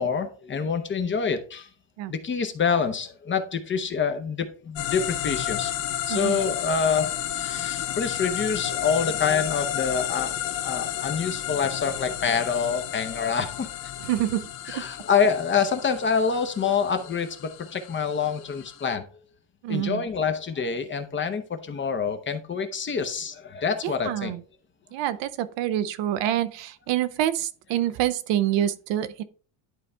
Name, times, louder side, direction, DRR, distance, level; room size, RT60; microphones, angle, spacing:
voice 1, 0.0-1.7 2.1-5.7 6.1-13.9 14.7-19.1 19.7-24.3, left 6 dB, 25° left, 0.7 m, -26 dB
sound 1, 4.8-18.9, left 12 dB, 65° left, 1.2 m, -32 dB
voice 2, 6.1-6.4 14.0-14.8 19.6-20.0 23.8-24.4 24.9-29.2, right 12 dB, 65° right, 0.7 m, -27 dB
11.0 x 4.1 x 3.4 m
cardioid pair, 140°, 48 cm